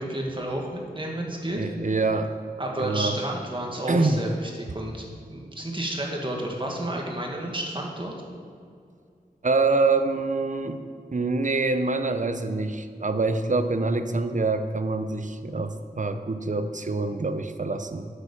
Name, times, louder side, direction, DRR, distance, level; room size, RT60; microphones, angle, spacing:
voice 1, 0.0-1.6 2.6-8.1, right 1 dB, 30° right, -1 dB, 1.8 m, -31 dB
voice 2, 1.6-2.3 2.8-3.1 3.9-4.2 9.4-10.8 11.1-18.1, right 3 dB, 50° right, 9 dB, 0.7 m, -25 dB
9.1 x 6.8 x 7.1 m, 2.2 s
wide cardioid pair, 70°, 17 cm